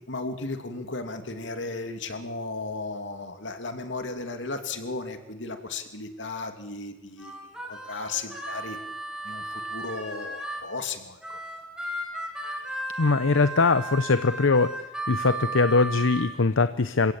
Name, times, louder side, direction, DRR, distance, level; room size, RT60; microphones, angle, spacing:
voice 1, 0.0-8.8 9.2-11.4, left 3 dB, 65° left, 7 dB, 2.9 m, -35 dB
Harmonica, 7.2-10.7 11.2-16.3, right 2 dB, 5° right, 5.1 m, -35 dB
voice 2, 13.0-14.7 15.1-17.1, left 3 dB, 85° left, 12 dB, 0.8 m, -22 dB
28.0 x 16.5 x 8.6 m, 0.99 s
head